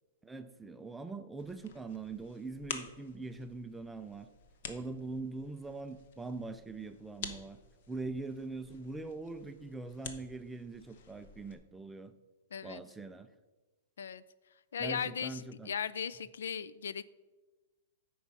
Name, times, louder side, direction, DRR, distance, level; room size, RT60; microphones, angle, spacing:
voice 1, 0.2-4.3 4.6-7.6 7.9-12.1 12.6-13.3 14.8-15.8, right 3 dB, 5° right, 9 dB, 0.3 m, -42 dB
sound 1, 1.4-11.5, left 6 dB, 45° left, 0.8 m, -49 dB
voice 2, 12.5-12.8 14.0-14.2 14.7-17.0, left 7 dB, 90° left, 16 dB, 0.4 m, -37 dB
8.9 x 4.7 x 5.4 m, 1.2 s
hypercardioid pair, 175°, 0 cm